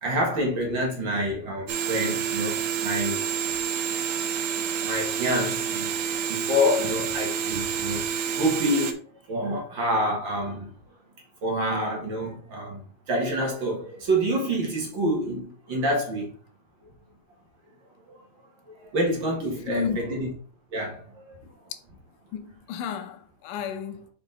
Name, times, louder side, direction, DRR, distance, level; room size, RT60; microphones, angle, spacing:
voice 1, 0.0-3.2 4.8-5.9 6.3-9.0 9.3-10.7 11.4-16.3 18.1-18.2 18.7-20.3 20.7-21.3, equal, 50° right, 1.5 m, -27 dB
sound 1, 1.7-8.9, right 7 dB, 85° right, 2.5 m, -28 dB
voice 2, 19.7-20.0 21.4-21.5 22.3-24.1, left 7 dB, 75° left, 2.1 m, -32 dB
6.3 x 4.4 x 3.8 m
omnidirectional pair, 4.0 m